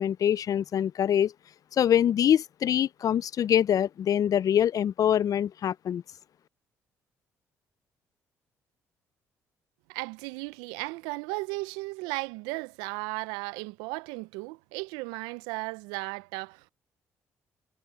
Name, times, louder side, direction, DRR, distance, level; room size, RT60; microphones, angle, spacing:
voice 1, 0.0-1.3 1.7-6.0, left 9 dB, 55° left, 0.5 m, -24 dB
voice 2, 9.9-16.7, right 24 dB, 85° right, 0.5 m, -35 dB
supercardioid pair, 60°, 7 cm